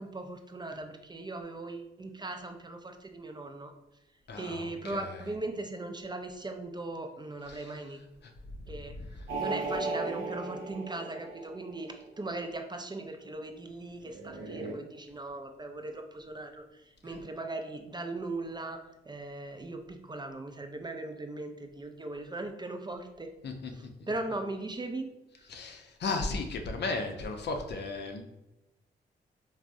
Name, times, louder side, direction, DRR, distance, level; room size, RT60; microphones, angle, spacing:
voice 1, 0.0-3.7 4.4-8.0 8.7-9.0 9.4-18.8 19.1-23.3 23.7-25.1 25.4-25.5, right 2 dB, 20° right, 5 dB, 0.4 m, -39 dB
voice 2, 4.3-5.2 7.5-7.7 8.2-8.3 8.6-9.3 17.0-17.1 23.4-23.7 24.0-24.1 25.5-28.2, left 3 dB, 55° left, 4 dB, 0.5 m, -36 dB
sound 1, 9.3-11.9 14.0-14.7, right 3 dB, 70° right, 0.7 m, -36 dB
3.4 x 2.0 x 2.5 m, 0.95 s
hypercardioid pair, 45°, 21 cm